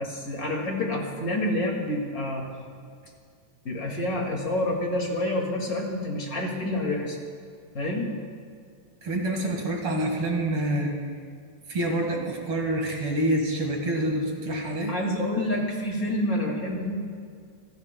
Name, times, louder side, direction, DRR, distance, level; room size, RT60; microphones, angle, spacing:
voice 1, 0.0-2.5 3.6-7.2 7.7-8.1 14.9-17.0, left 1 dB, 30° left, 0 dB, 2.0 m, -28 dB
voice 2, 9.0-10.9 11.7-15.0, right 1 dB, 45° right, 1 dB, 2.3 m, -27 dB
27.0 x 16.0 x 2.2 m, 2.2 s
omnidirectional pair, 3.9 m